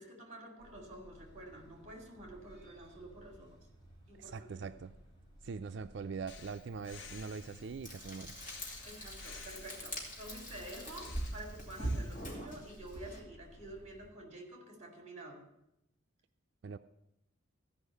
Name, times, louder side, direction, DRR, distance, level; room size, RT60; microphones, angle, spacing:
voice 1, 0.0-3.6 4.1-4.5 8.8-15.4, right 1 dB, 30° right, 2 dB, 2.4 m, -49 dB
sound 1, 0.6-14.1, equal, 20° left, 4.3 m, -59 dB
voice 2, 4.1-4.9 5.4-8.3 16.6-16.8, right 5 dB, 55° right, 10 dB, 0.4 m, -42 dB
Breathing, 6.3-12.3, left 4 dB, 60° left, 0.8 m, -54 dB
Frying (food), 7.8-13.2, right 1 dB, 35° left, 2.6 m, -42 dB
14.5 x 5.5 x 8.1 m, 0.85 s
head